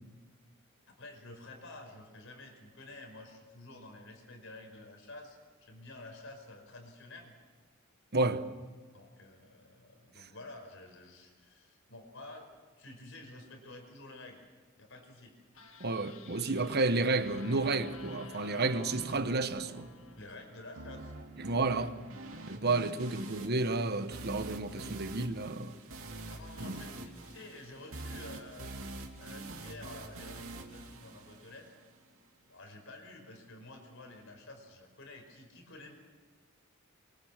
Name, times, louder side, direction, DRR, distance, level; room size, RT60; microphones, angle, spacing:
voice 1, 0.9-7.3 8.9-12.5 12.8-14.4 14.8-15.4 20.2-21.1 23.1-23.2 26.2-28.8 29.2-31.7 32.5-35.9, left 2 dB, 65° left, 5.2 m, -50 dB
voice 2, 8.1-8.4 15.8-19.9 21.4-22.0 22.5-25.7 26.6-26.8, right 3 dB, 50° right, 1.2 m, -31 dB
sound 1, 15.5-20.8, left 5 dB, 85° left, 2.0 m, -52 dB
sound 2, 16.9-31.9, right 2 dB, 90° right, 2.9 m, -46 dB
24.0 x 23.0 x 7.5 m
head